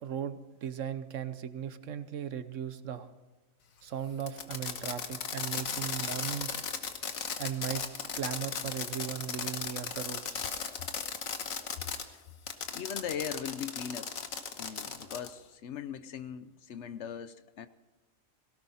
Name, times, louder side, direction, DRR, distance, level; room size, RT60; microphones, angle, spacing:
voice 1, 0.0-3.1 3.8-6.6 7.4-7.8 8.1-10.5, right 9 dB, 70° right, 12 dB, 1.2 m, -37 dB
Fireworks, 4.2-12.0 12.5-15.3, left 6 dB, 85° left, 1.6 m, -36 dB
voice 2, 12.7-14.1 14.5-17.7, left 8 dB, 65° left, 13 dB, 1.0 m, -39 dB
18.0 x 17.0 x 4.2 m, 1.1 s
omnidirectional pair, 1.4 m